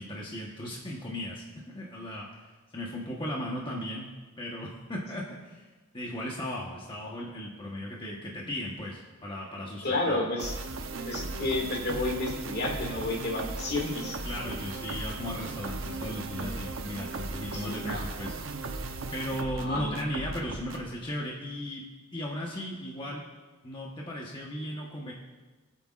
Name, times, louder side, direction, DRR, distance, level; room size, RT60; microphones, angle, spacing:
voice 1, 0.0-4.1 4.4-5.7 5.9-10.2 14.2-18.4 19.1-21.8 22.1-23.2 23.6-25.1, equal, 25° left, -3 dB, 1.2 m, -36 dB
voice 2, 9.8-10.6 11.1-14.2 14.9-15.0 17.5-18.0 19.3-19.9, left 2 dB, 55° left, 0 dB, 2.3 m, -31 dB
sound 1, 10.4-20.9, right 3 dB, 85° right, 0.9 m, -37 dB
23.5 x 8.2 x 2.5 m, 1.3 s
head